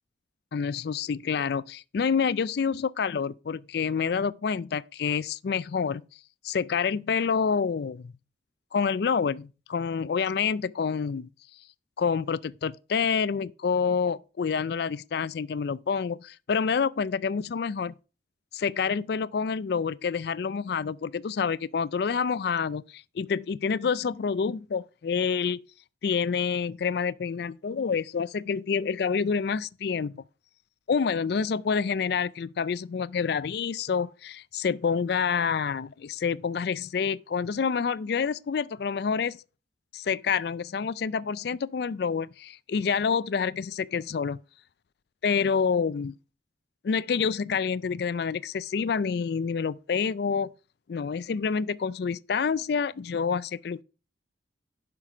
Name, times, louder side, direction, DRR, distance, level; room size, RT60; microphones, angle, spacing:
voice 1, 0.5-6.0 6.4-8.1 8.7-11.3 12.0-17.9 18.5-25.6 26.0-30.2 30.9-39.4 39.9-44.4 45.2-46.1 46.8-50.5 50.9-53.8, left 6 dB, 55° left, 0.4 m, -28 dB
11.0 x 5.9 x 4.8 m
head